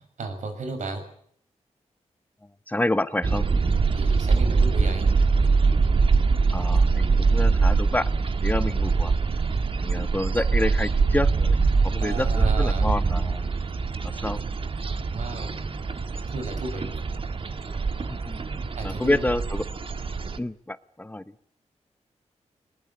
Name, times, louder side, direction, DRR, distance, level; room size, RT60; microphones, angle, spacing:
voice 1, 0.2-1.0 3.9-5.0 12.0-12.9 15.1-15.5 16.3-16.9 18.8-19.3, right 3 dB, 85° right, 7 dB, 6.8 m, -34 dB
voice 2, 2.7-3.5 6.5-8.1 8.4-9.1 9.8-11.6 11.8-13.5 14.0-14.4 18.1-18.4 18.8-19.6 20.4-21.3, left 1 dB, 15° left, 14 dB, 1.0 m, -28 dB
sound 1, 3.2-20.4, right 4 dB, 50° right, 1.6 m, -23 dB
21.5 x 20.0 x 9.9 m, 0.66 s
wide cardioid pair, 105°, 12 cm